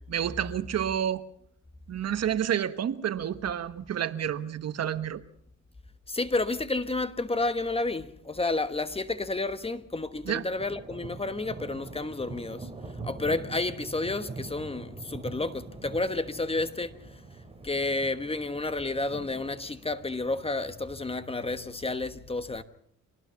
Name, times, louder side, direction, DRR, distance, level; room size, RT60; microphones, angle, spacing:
voice 1, 0.1-1.2 1.9-5.2 10.2-10.4, right 9 dB, 60° right, 1.3 m, -29 dB
voice 2, 6.1-12.7 13.0-17.0 17.6-22.6, left 2 dB, 20° left, 1.3 m, -31 dB
sound 1, 10.5-21.8, right 3 dB, 20° right, 4.0 m, -44 dB
25.5 x 18.5 x 5.8 m
cardioid pair, 90°, 30 cm